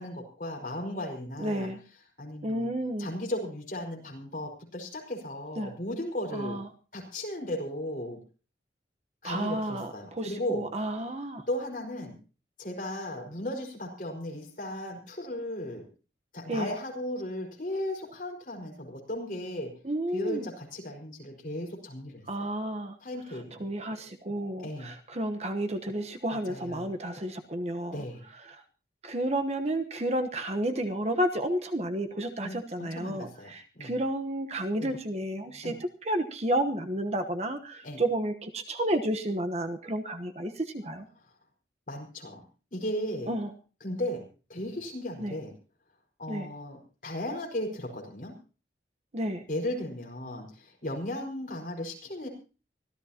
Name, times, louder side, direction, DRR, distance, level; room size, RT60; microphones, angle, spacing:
voice 1, 0.0-1.7 2.0-2.7 3.0-6.6 6.9-8.2 9.2-10.7 11.2-12.2 12.6-15.8 16.3-19.7 20.1-22.5 23.0-23.7 24.6-24.9 26.3-26.9 27.9-28.2 32.4-34.0 34.8-34.9 35.6-35.8 37.8-38.0 41.1-41.3 41.9-42.4 42.7-43.3 43.8-45.5 46.2-48.3 49.5-52.3, left 1 dB, 45° left, 0 dB, 5.1 m, -36 dB
voice 2, 1.4-1.8 2.4-3.1 5.6-5.7 6.3-6.6 9.2-11.4 16.5-16.7 19.8-20.4 22.3-22.9 23.6-28.0 29.0-35.7 36.0-41.0 43.3-43.5 45.2-45.3 46.3-46.5 49.1-49.4, right 1 dB, 35° right, 6 dB, 1.1 m, -31 dB
24.5 x 14.5 x 2.9 m, 0.35 s
head